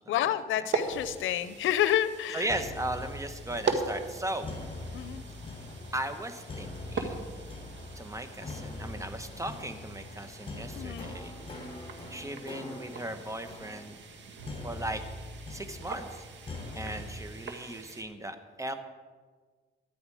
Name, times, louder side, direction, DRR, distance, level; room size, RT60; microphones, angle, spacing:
voice 1, 0.1-2.5 4.9-5.2 10.7-11.1, left 11 dB, 80° left, 14 dB, 0.7 m, -29 dB
sound 1, 0.7-18.0, right 4 dB, 65° right, 1.6 m, -40 dB
voice 2, 2.3-4.5 5.9-7.3 7.9-11.3 12.1-14.0 14.6-15.0 15.5-16.2 16.7-18.7, right 1 dB, 15° right, 9 dB, 1.3 m, -37 dB
sound 2, 2.5-17.2, left 2 dB, 30° left, 3.4 m, -43 dB
sound 3, 4.0-10.5, left 5 dB, 45° left, 1.5 m, -54 dB
14.0 x 10.5 x 4.9 m, 1.5 s
cardioid pair, 90°, 20 cm